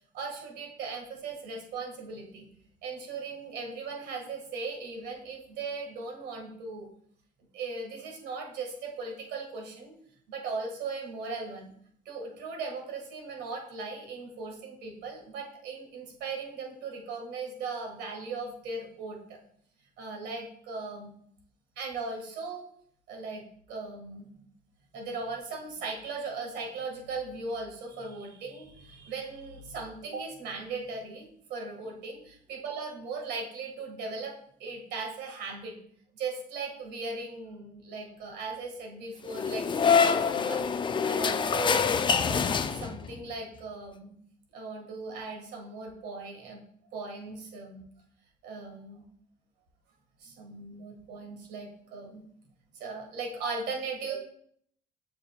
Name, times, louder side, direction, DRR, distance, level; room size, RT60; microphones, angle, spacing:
voice 1, 0.1-2.5 2.8-6.9 7.5-9.9 10.3-11.7 12.1-19.4 20.0-21.1 21.8-22.6 23.1-24.3 24.9-34.3 34.6-35.8 36.1-40.6 41.1-41.8 42.2-44.2 44.5-46.6 46.9-47.9 48.4-49.0 50.2-52.2 52.7-54.2, right 4 dB, 80° right, 1 dB, 2.0 m, -38 dB
sound 1, 39.3-43.2, left 6 dB, 30° left, 0.4 m, -25 dB
6.9 x 6.1 x 2.4 m, 0.64 s
cardioid pair, 110°, 17 cm